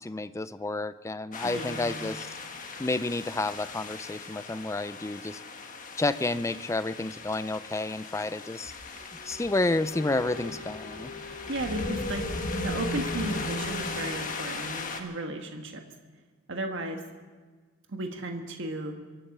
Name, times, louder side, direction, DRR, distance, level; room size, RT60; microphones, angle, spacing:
voice 1, 0.0-2.3 2.8-5.4 6.0-8.7 9.2-11.1, left 2 dB, 15° left, 14 dB, 0.4 m, -30 dB
sound 1, 1.3-15.0, left 2 dB, 40° left, 1.4 m, -37 dB
voice 2, 1.4-2.1 11.5-12.3 12.6-15.8 16.5-17.0 17.9-18.9, right 1 dB, 60° right, 4 dB, 1.4 m, -34 dB
Wind instrument woodwind instrument, 9.9-15.0, left 2 dB, 60° left, 1.7 m, -45 dB
24.0 x 8.9 x 6.6 m, 1.4 s
head